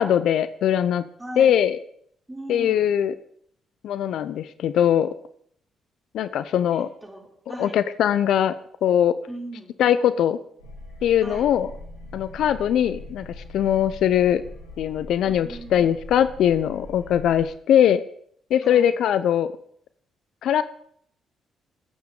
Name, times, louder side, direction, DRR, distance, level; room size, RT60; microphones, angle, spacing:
voice 1, 0.0-1.0 1.4-1.8 2.5-3.1 3.8-5.1 6.1-6.9 7.6-8.5 8.8-9.2 9.8-10.4 11.0-11.7 12.1-13.2 13.5-14.4 14.8-18.0 18.5-19.5 20.4-20.6, left 10 dB, 65° left, 14 dB, 0.6 m, -21 dB
voice 2, 1.2-1.6 2.3-2.9 6.7-7.8 9.3-9.7 11.2-11.5 15.3-16.0 18.6-19.0, right 1 dB, 15° right, -2 dB, 5.5 m, -39 dB
sound 1, 10.6-17.5, left 1 dB, 85° left, 4.8 m, -41 dB
21.5 x 8.7 x 3.9 m, 0.65 s
hypercardioid pair, 45°, 0 cm